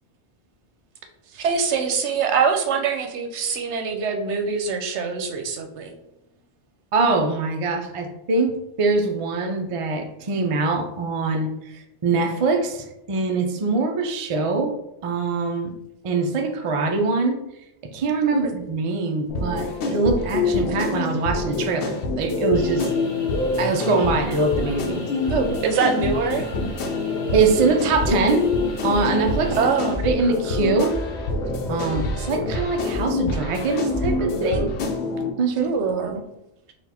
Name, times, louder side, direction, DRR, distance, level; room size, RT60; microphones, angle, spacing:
voice 1, 1.3-5.9 18.3-18.5 25.3-26.4 29.5-30.1 35.6-36.2, right 5 dB, 85° right, 5 dB, 0.9 m, -24 dB
voice 2, 6.9-14.7 15.0-15.7 16.0-17.4 17.9-22.9 23.6-25.0 27.3-28.4 28.8-29.6 30.0-31.0 31.7-34.7 35.4-35.7, right 3 dB, 50° right, 4 dB, 0.4 m, -23 dB
sound 1, 19.3-35.3, left 3 dB, 75° left, 0.9 m, -26 dB
sound 2, 22.5-29.9, equal, 35° left, 0.6 m, -41 dB
sound 3, 27.4-34.3, left 1 dB, 5° left, 0.9 m, -36 dB
4.3 x 2.4 x 4.1 m, 0.86 s
omnidirectional pair, 1.1 m